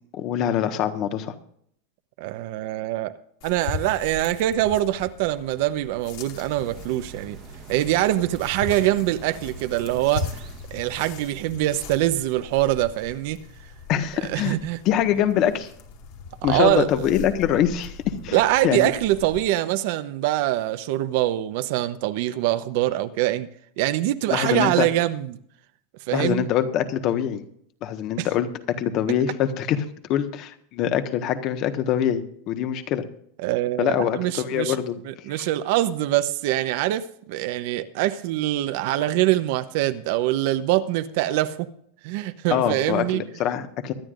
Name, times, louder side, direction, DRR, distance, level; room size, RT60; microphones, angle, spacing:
voice 1, 0.1-1.3 13.9-14.6 14.8-15.7 16.4-18.9 24.3-24.9 26.1-27.4 27.8-28.5 28.8-33.0 33.8-35.0 35.3-35.5 42.5-43.9, left 10 dB, 45° left, 1.4 m, -24 dB
voice 2, 2.2-3.1 3.4-7.4 7.7-10.3 10.7-13.4 14.3-14.8 16.4-17.1 18.3-23.5 23.8-25.4 26.1-26.5 28.2-28.3 30.9-31.0 33.4-34.8 35.1-41.7 42.0-43.2, right 14 dB, 60° right, 0.8 m, -24 dB
sound 1, 3.4-19.4, left 4 dB, 60° left, 2.3 m, -39 dB
sound 2, 6.6-10.9, right 7 dB, 40° right, 1.3 m, -43 dB
23.0 x 10.0 x 2.6 m
supercardioid pair, 140°, 0 cm